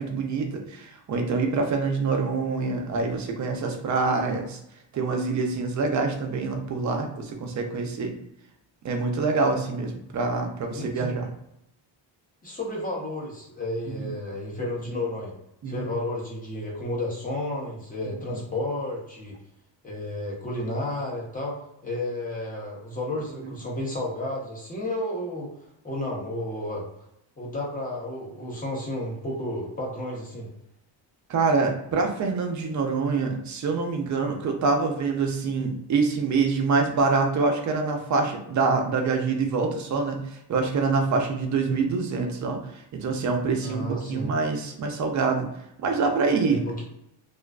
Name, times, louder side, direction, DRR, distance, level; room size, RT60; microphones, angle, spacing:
voice 1, 0.0-4.6 4.9-8.1 8.8-11.3 13.9-14.1 15.6-15.8 18.1-18.2 31.3-40.2 40.5-42.6 42.9-45.5 45.8-46.6, right 4 dB, 40° right, 3 dB, 0.5 m, -25 dB
voice 2, 10.7-11.1 12.4-15.3 15.7-19.4 19.8-21.6 21.8-25.5 25.8-26.9 27.4-30.5 43.6-44.3 46.4-46.8, left 1 dB, 20° left, -3 dB, 0.7 m, -32 dB
2.4 x 2.3 x 2.2 m, 0.80 s
cardioid pair, 120°, 47 cm